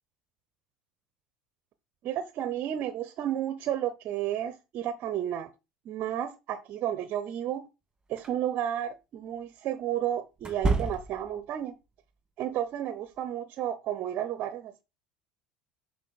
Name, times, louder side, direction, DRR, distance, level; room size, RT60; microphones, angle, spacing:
voice 1, 2.0-5.5 5.8-7.6 8.1-11.7 12.4-14.7, right 11 dB, 55° right, 0.9 m, -32 dB
sound 1, 8.2-8.4 10.4-11.4, right 3 dB, 20° right, 1.9 m, -29 dB
6.4 x 4.9 x 4.1 m
hypercardioid pair, 80°, 4 cm